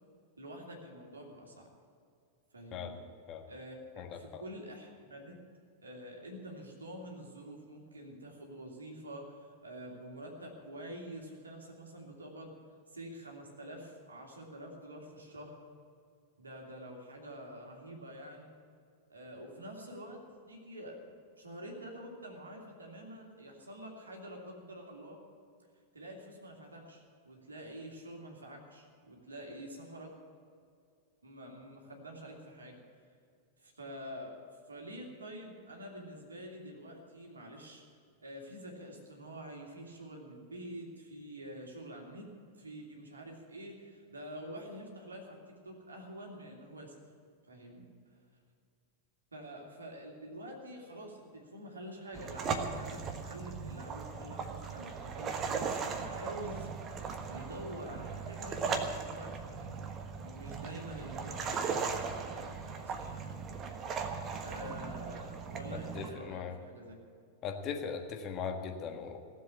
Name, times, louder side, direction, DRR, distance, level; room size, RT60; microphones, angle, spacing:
voice 1, 0.4-1.7 2.5-3.0 3.5-5.4 5.8-12.5 12.9-15.6 16.4-18.5 19.1-20.2 20.5-25.2 25.9-30.1 31.2-32.8 33.6-34.4 34.7-37.8 38.2-45.4 45.6-46.9 47.5-47.8 49.3-56.7 57.3-59.7 60.2-63.3 64.4-67.0, right 1 dB, 75° right, 0 dB, 2.8 m, -47 dB
voice 2, 4.0-4.4 65.7-66.5 67.4-69.2, left 6 dB, 35° left, 4 dB, 1.5 m, -39 dB
sound 1, 52.1-66.1, right 5 dB, 30° right, 1.4 m, -38 dB
17.0 x 7.7 x 9.5 m, 2.3 s
figure-of-eight pair, 90°, 0 cm